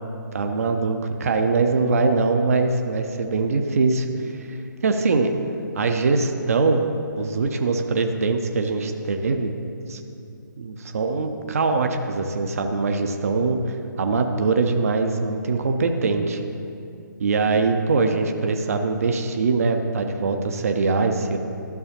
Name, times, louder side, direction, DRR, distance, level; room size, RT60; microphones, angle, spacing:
voice 1, 0.3-4.6 4.8-5.3 5.8-6.8 7.2-9.5 9.9-10.0 10.6-13.6 14.0-16.4 17.2-21.4, right 3 dB, 45° right, 5 dB, 0.6 m, -22 dB
13.0 x 6.3 x 2.9 m, 2.7 s
figure-of-eight pair, 140°, 11 cm